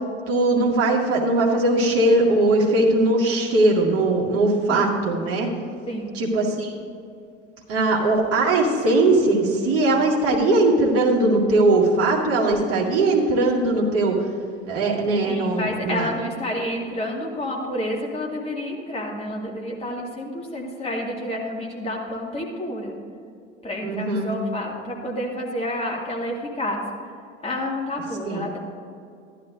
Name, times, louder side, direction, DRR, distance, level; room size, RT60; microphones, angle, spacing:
voice 1, 0.3-5.5 6.1-6.7 7.7-14.2 14.7-16.1 23.8-24.3 28.2-28.5, right 2 dB, 40° right, -3 dB, 2.3 m, -20 dB
voice 2, 15.3-22.9 23.6-26.8 27.4-28.6, left 1 dB, 15° left, -2 dB, 2.2 m, -29 dB
14.0 x 11.5 x 2.6 m, 2.4 s
figure-of-eight pair, 70°, 35 cm